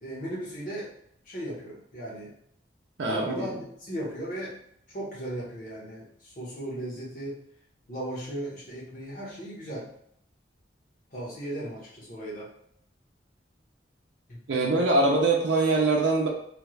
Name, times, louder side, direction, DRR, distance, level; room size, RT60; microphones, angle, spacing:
voice 1, 0.0-0.9 1.2-2.3 3.0-4.6 4.9-7.4 7.9-9.9 11.1-12.5 14.3-14.4, right 1 dB, 50° left, -5 dB, 1.1 m, -36 dB
voice 2, 3.0-3.5 14.5-16.3, right 2 dB, 80° right, -1 dB, 0.5 m, -23 dB
3.4 x 2.3 x 3.1 m, 0.69 s
head